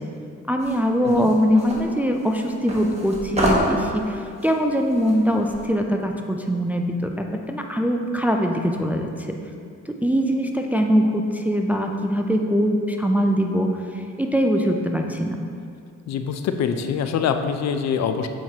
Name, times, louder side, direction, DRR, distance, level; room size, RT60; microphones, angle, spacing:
voice 1, 0.5-9.4 9.9-15.4, equal, 5° right, 3 dB, 0.3 m, -22 dB
sound 1, 0.6-5.7, equal, 20° right, 1.2 m, -28 dB
voice 2, 1.0-1.3 16.1-18.3, left 7 dB, 60° left, 8 dB, 0.5 m, -24 dB
7.4 x 4.5 x 2.8 m, 2.3 s
cardioid pair, 90°, 30 cm